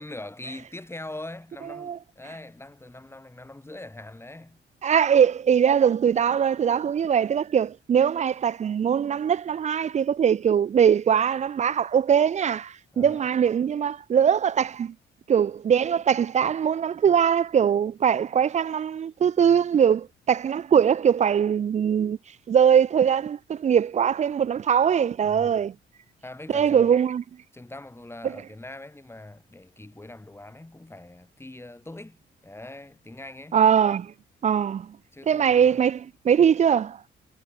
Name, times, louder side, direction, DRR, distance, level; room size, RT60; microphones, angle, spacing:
voice 1, 0.0-4.6 12.9-13.3 25.2-25.6 26.2-26.9 27.5-33.6 35.1-35.9, left 2 dB, 10° left, 6.7 m, -42 dB
voice 2, 4.8-14.9 15.3-22.2 22.5-25.7 26.5-27.2 28.2-28.3 33.5-34.1 34.4-35.0 35.3-37.0, right 8 dB, 35° right, 0.4 m, -21 dB
cardioid pair, 90°, 20 cm